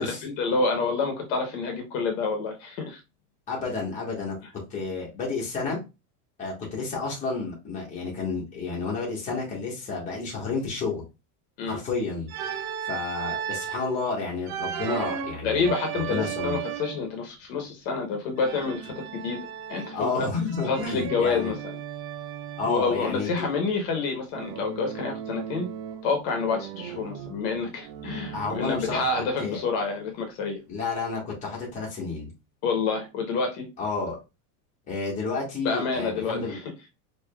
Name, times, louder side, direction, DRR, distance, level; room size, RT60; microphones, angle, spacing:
voice 1, 0.2-3.0 11.6-11.8 15.4-19.4 19.7-20.3 20.6-21.8 22.7-25.7 26.0-30.6 32.6-33.7 35.6-36.6, left 4 dB, 55° left, 1.1 m, -28 dB
voice 2, 3.5-4.3 4.7-5.8 6.4-11.0 11.6-15.7 16.1-16.6 19.9-21.5 22.6-23.3 28.3-29.1 29.4-29.6 30.7-32.3 33.8-34.2 34.9-36.6, left 4 dB, 15° left, 1.3 m, -31 dB
Organ, 12.3-13.9 14.5-17.1 18.4-20.1 20.5-22.8 24.3-26.1 26.5-29.2, right 9 dB, 70° right, 0.7 m, -36 dB
4.7 x 2.9 x 2.2 m
cardioid pair, 170°, 44 cm